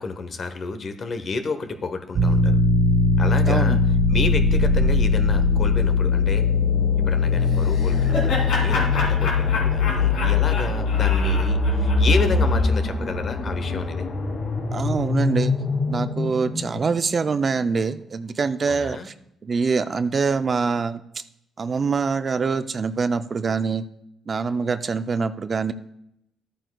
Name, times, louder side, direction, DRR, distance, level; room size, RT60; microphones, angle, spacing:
voice 1, 0.0-2.6 3.2-3.8 4.1-6.4 7.0-14.1 18.7-19.1, left 4 dB, 50° left, 8 dB, 0.9 m, -30 dB
sound 1, 2.1-12.6, left 4 dB, 55° right, 1.9 m, -21 dB
voice 2, 3.5-3.8 14.7-15.5 15.9-19.1 19.4-21.0 21.6-23.8 24.3-25.7, right 5 dB, 40° right, 12 dB, 0.4 m, -24 dB
sound 2, 3.9-17.6, left 2 dB, 65° left, 2.3 m, -25 dB
Laughter, 7.5-12.7, left 3 dB, 85° left, 2.6 m, -30 dB
13.0 x 8.9 x 2.3 m, 0.79 s
cardioid pair, 90°, 0 cm